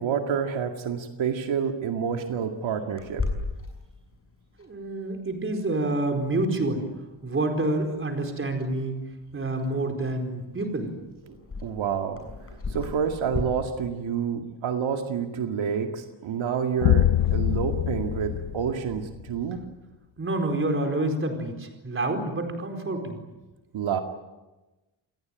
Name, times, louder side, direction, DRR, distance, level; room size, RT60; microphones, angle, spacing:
voice 1, 0.0-3.2 11.3-11.4 11.6-12.2 12.7-19.6 23.7-24.0, right 7 dB, 75° right, 5 dB, 2.3 m, -28 dB
Clock, 3.0-13.4, left 3 dB, 30° left, 6.5 m, -39 dB
voice 2, 4.6-6.9 7.2-9.0 9.3-10.9 20.2-23.2, right 2 dB, 25° right, 4 dB, 4.5 m, -28 dB
sound 1, 16.8-19.4, left 11 dB, 80° left, 1.1 m, -24 dB
28.0 x 20.0 x 9.2 m, 1.1 s
wide cardioid pair, 170°, 46 cm